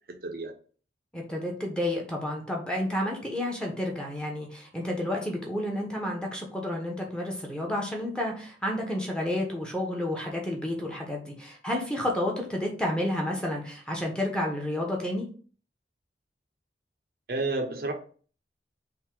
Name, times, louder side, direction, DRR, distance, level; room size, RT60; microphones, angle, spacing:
voice 1, 0.1-0.5 17.3-17.9, right 2 dB, 55° right, 4 dB, 0.6 m, -30 dB
voice 2, 1.1-15.2, left 1 dB, 5° left, -1 dB, 0.8 m, -30 dB
3.5 x 2.7 x 4.5 m, 0.42 s
head